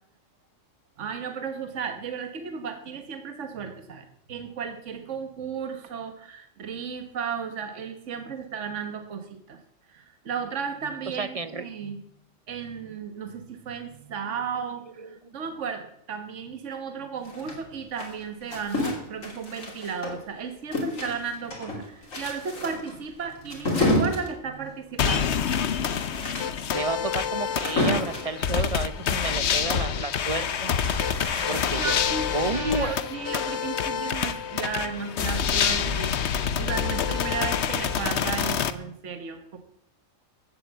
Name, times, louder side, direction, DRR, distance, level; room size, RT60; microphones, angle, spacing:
voice 1, 1.0-9.6 9.9-12.0 12.5-25.3 31.2-39.6, right 6 dB, 65° right, 7 dB, 1.5 m, -34 dB
voice 2, 11.1-11.6 15.0-15.4 26.7-30.7 31.5-31.9 32.3-32.9 34.1-34.2 35.9-36.0, right 3 dB, 35° right, 13 dB, 0.6 m, -31 dB
sound 1, 17.2-20.4 20.7-28.4 30.3-31.9, left 2 dB, 85° left, 3.5 m, -30 dB
sound 2, 25.0-38.7, left 7 dB, 60° left, 1.0 m, -27 dB
14.5 x 7.8 x 8.3 m, 0.77 s
omnidirectional pair, 1.3 m